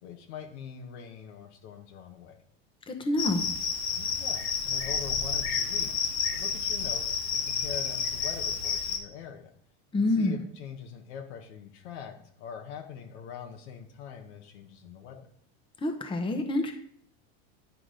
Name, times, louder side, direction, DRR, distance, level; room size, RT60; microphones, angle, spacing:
voice 1, 0.0-2.4 3.9-9.5 9.9-15.3, left 7 dB, 75° left, 3 dB, 1.3 m, -43 dB
voice 2, 2.9-3.4 9.9-10.4 15.8-16.7, left 2 dB, 15° left, 4 dB, 1.0 m, -27 dB
Cricket, 3.2-9.0, left 6 dB, 55° left, 1.5 m, -30 dB
10.5 x 4.9 x 3.9 m, 0.66 s
supercardioid pair, 120°, 34 cm